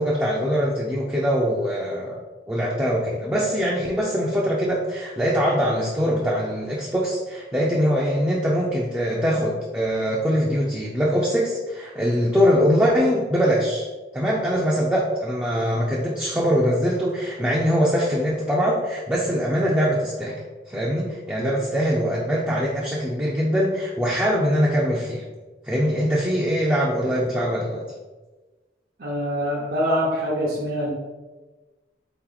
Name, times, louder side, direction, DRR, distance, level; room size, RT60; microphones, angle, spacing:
voice 1, 0.0-13.9 14.1-20.4 20.7-25.3 25.6-27.9, equal, 10° right, -4 dB, 0.4 m, -22 dB
voice 2, 29.0-30.9, equal, 55° right, -5 dB, 0.7 m, -24 dB
4.1 x 2.9 x 3.9 m, 1.2 s
head